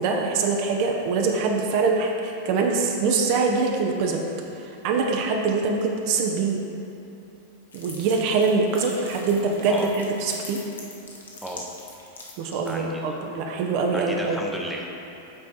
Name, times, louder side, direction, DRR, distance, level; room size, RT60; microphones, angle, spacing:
voice 1, 0.0-4.2 4.6-6.6 7.7-10.6 12.4-14.4, right 4 dB, 45° right, 1 dB, 0.6 m, -24 dB
sound 1, 7.7-12.8, left 3 dB, 70° left, 1.0 m, -42 dB
voice 2, 12.7-13.2 13.9-14.8, right 1 dB, 5° right, -1 dB, 0.7 m, -34 dB
7.5 x 4.6 x 4.2 m, 2.9 s
figure-of-eight pair, 90°, 0 cm